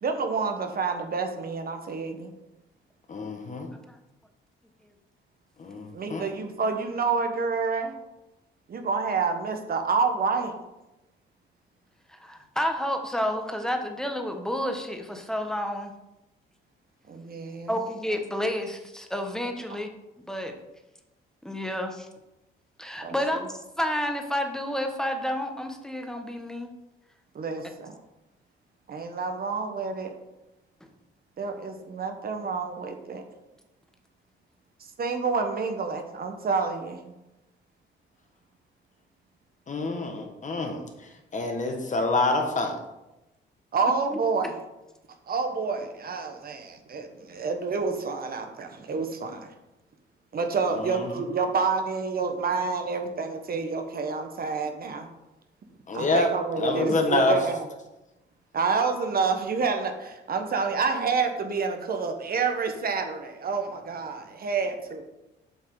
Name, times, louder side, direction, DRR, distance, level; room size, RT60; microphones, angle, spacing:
voice 1, 0.0-2.3 5.9-7.9 8.7-10.5 17.1-17.8 23.0-23.1 27.3-28.0 28.9-30.1 31.4-33.2 35.0-37.1 43.7-44.5 45.3-49.4 50.3-55.1 55.9-57.7 58.5-65.0, right 4 dB, 50° right, 5 dB, 1.2 m, -28 dB
voice 2, 3.1-3.7 5.6-6.3 39.7-40.8 41.3-42.8 50.7-51.1 55.9-57.4, left 2 dB, 40° left, 4 dB, 1.6 m, -26 dB
voice 3, 12.1-15.9 17.7-19.9 20.3-20.5 21.4-22.1 22.8-26.7 44.1-44.2, equal, 5° left, 4 dB, 1.3 m, -30 dB
7.7 x 5.6 x 4.8 m, 0.96 s
cardioid pair, 90°, 20 cm